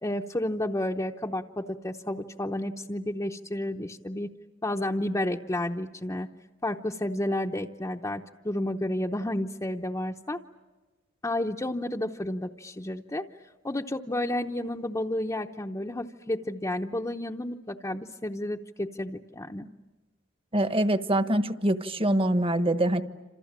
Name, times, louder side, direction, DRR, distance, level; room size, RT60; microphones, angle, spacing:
voice 1, 0.0-4.3 4.6-6.3 6.6-10.4 11.2-13.3 13.6-19.7, left 1 dB, 15° left, 0 dB, 0.8 m, -31 dB
voice 2, 20.5-23.0, right 1 dB, 30° right, 10 dB, 1.3 m, -24 dB
28.5 x 27.5 x 7.4 m, 1.2 s
head